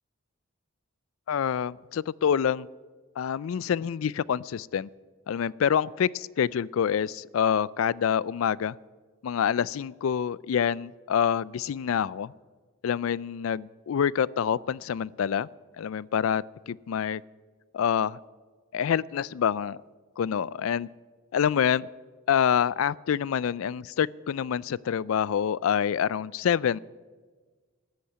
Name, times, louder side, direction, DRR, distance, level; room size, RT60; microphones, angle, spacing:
voice 1, 1.3-2.7 3.2-4.9 5.3-8.7 9.2-12.3 12.8-15.5 15.8-17.2 17.7-18.2 18.7-19.8 20.2-20.9 21.3-21.9 22.3-26.8, left 8 dB, 75° left, 23 dB, 0.3 m, -26 dB
13.5 x 8.6 x 9.3 m, 1.4 s
head